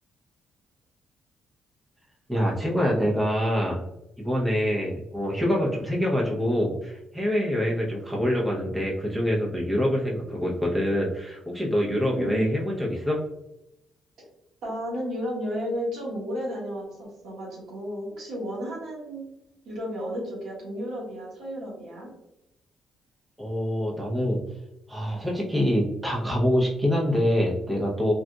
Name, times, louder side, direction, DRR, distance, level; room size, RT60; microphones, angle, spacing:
voice 1, 2.3-3.8 4.2-13.2 23.4-24.4 24.9-28.1, equal, 10° right, -3 dB, 0.7 m, -25 dB
voice 2, 12.1-12.5 14.6-19.3 19.6-22.1, equal, 75° right, -4 dB, 1.4 m, -33 dB
3.8 x 2.4 x 2.2 m, 0.87 s
cardioid pair, 90°, 0 cm